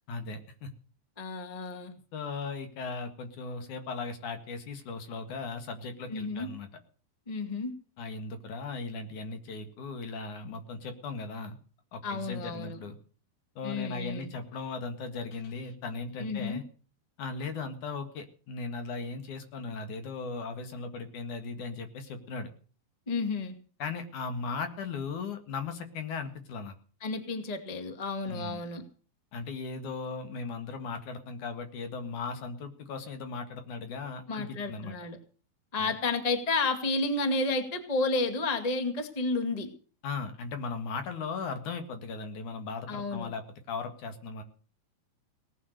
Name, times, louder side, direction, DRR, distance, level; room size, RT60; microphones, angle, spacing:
voice 1, 0.1-0.7 2.1-6.7 8.0-11.6 11.9-12.9 13.6-16.6 17.2-22.5 23.8-26.7 28.3-28.6 29.3-35.0 35.8-35.9 40.0-44.4, left 4 dB, 55° left, 7 dB, 2.7 m, -37 dB
voice 2, 1.2-1.9 6.1-6.5 7.3-7.7 12.0-12.8 13.6-14.3 16.2-16.6 23.1-23.5 27.0-28.8 34.3-35.2 35.7-39.7 42.9-43.3, left 3 dB, 85° left, 7 dB, 0.3 m, -31 dB
18.5 x 9.7 x 6.7 m, 0.42 s
omnidirectional pair, 5.2 m